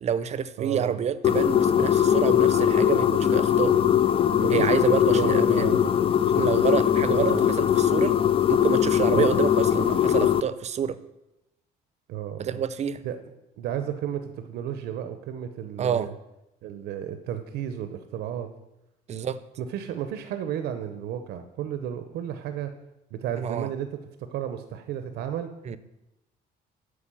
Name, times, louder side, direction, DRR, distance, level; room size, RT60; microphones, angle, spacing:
voice 1, 0.0-3.8 4.5-5.7 6.3-8.2 8.5-11.0 12.4-13.0 15.8-16.1 19.1-19.4 23.4-23.7 25.7-25.8, right 8 dB, 40° right, 15 dB, 0.6 m, -28 dB
voice 2, 0.6-1.0 4.4-5.8 7.1-7.5 9.1-9.4 12.1-12.6 13.0-13.2 13.6-16.1 16.6-18.5 19.2-19.3 19.6-22.7 23.1-23.9 24.2-25.5, right 10 dB, 75° right, 9 dB, 0.7 m, -33 dB
sound 1, 1.2-10.4, left 9 dB, 35° left, 0.4 m, -21 dB
8.5 x 4.8 x 7.5 m, 0.92 s
cardioid pair, 110°, 17 cm